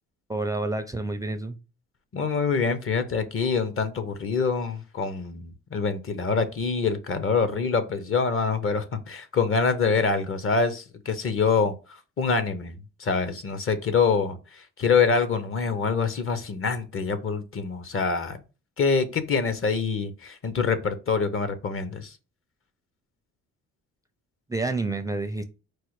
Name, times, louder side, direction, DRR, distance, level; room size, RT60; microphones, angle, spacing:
voice 1, 0.3-1.6 24.5-25.4, right 2 dB, 10° right, 0.4 m, -29 dB
voice 2, 2.1-18.4 18.8-22.2, left 5 dB, 45° left, 0.9 m, -25 dB
4.6 x 2.1 x 4.6 m
cardioid pair, 90°, 30 cm